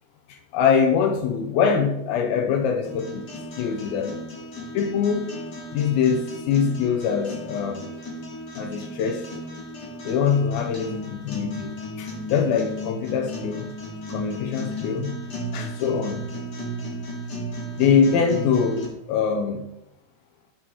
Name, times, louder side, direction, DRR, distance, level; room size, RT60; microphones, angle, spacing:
voice 1, 0.3-3.3 3.6-4.2 4.7-5.3 5.7-7.9 8.6-9.3 10.0-13.7 14.1-15.2 15.5-16.2 17.8-19.6, left 6 dB, 80° left, 2.3 m, -23 dB
sound 1, 2.8-18.9, equal, 40° left, 1.5 m, -35 dB
12.0 x 4.7 x 4.5 m
omnidirectional pair, 4.8 m